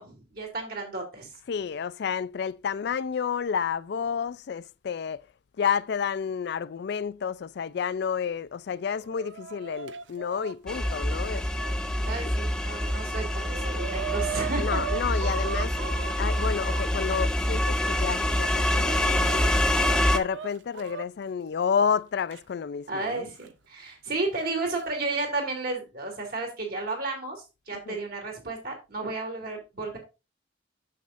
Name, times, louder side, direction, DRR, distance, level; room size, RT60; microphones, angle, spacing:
voice 1, 0.0-1.3 12.1-15.1 22.9-30.0, right 3 dB, 55° right, 3.0 m, -33 dB
voice 2, 1.5-5.2 5.6-11.5 14.6-15.8 16.1-19.4 20.1-23.3 27.7-28.0, left 7 dB, 65° left, 0.4 m, -30 dB
Chicken rooster, 8.7-12.2 12.8-12.9 13.1-17.2 17.8-21.1 22.3-22.4 23.4-23.5 24.5-24.8, right 7 dB, 80° right, 0.5 m, -38 dB
sound 1, 10.7-20.2, left 1 dB, 5° left, 0.6 m, -26 dB
9.2 x 7.0 x 2.6 m
head